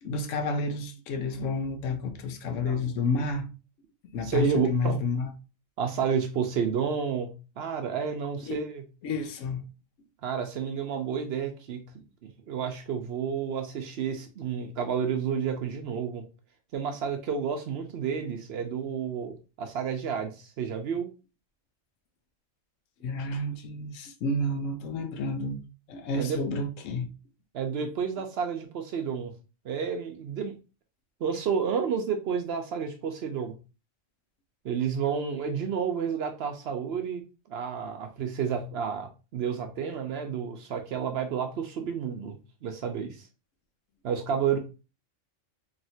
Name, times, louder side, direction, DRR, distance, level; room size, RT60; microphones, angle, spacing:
voice 1, 0.0-3.5 4.1-5.3 8.5-8.6 9.0-9.6 23.0-25.6 25.9-27.1, left 3 dB, 80° left, 1.0 m, -30 dB
voice 2, 4.2-5.0 5.8-7.3 7.6-8.8 10.2-11.8 12.2-16.2 16.7-21.1 26.2-26.4 27.5-29.3 29.6-30.6 31.2-33.6 34.6-37.2 37.5-43.3 44.0-44.6, right 7 dB, 65° right, 0.7 m, -30 dB
3.1 x 2.7 x 2.6 m
omnidirectional pair, 1.3 m